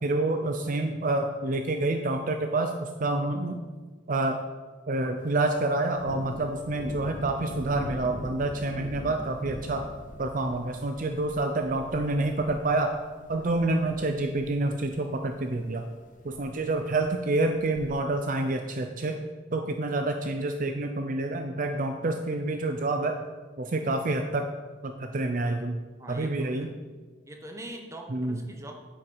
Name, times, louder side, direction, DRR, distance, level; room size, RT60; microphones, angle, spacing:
voice 1, 0.0-3.6 4.1-4.4 4.9-9.9 10.2-12.9 13.3-15.8 16.2-19.2 19.5-23.2 23.6-24.5 24.8-25.8 26.1-26.7 28.1-28.4, right 2 dB, 45° right, 5 dB, 0.6 m, -28 dB
Thunder, 5.2-17.9, left 1 dB, 45° left, 0.7 m, -44 dB
voice 2, 26.0-26.7 27.2-28.7, right 1 dB, 15° right, 2 dB, 1.1 m, -42 dB
9.6 x 7.9 x 4.7 m, 1.4 s
head